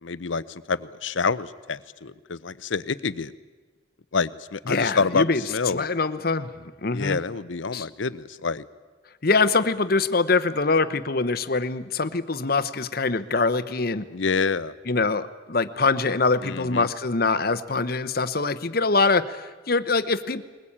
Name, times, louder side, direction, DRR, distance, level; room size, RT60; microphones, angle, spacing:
voice 1, 0.0-3.3 4.1-5.9 6.9-8.6 14.1-14.7 16.4-16.9, left 4 dB, 80° left, 16 dB, 0.8 m, -27 dB
voice 2, 4.7-5.4 5.7-6.5 6.8-7.2 7.7-7.9 9.2-14.0 14.9-20.4, left 3 dB, 50° left, 12 dB, 1.0 m, -24 dB
21.5 x 20.5 x 8.8 m, 1.3 s
head